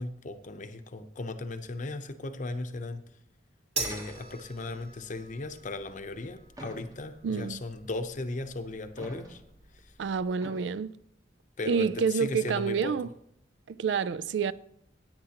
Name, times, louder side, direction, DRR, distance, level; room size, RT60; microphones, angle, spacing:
voice 1, 0.0-3.0 3.8-9.4 11.6-12.9, left 2 dB, 45° left, 0.8 m, -37 dB
sound 1, 3.8-4.6 6.6-7.3 9.0-9.6 10.4-10.8, equal, 20° right, 1.1 m, -45 dB
sound 2, 3.8-10.3, right 3 dB, 35° right, 1.9 m, -43 dB
voice 2, 7.2-7.6 10.0-10.9 11.7-13.1 13.7-14.5, right 6 dB, 80° right, 0.4 m, -28 dB
16.5 x 8.8 x 2.9 m
head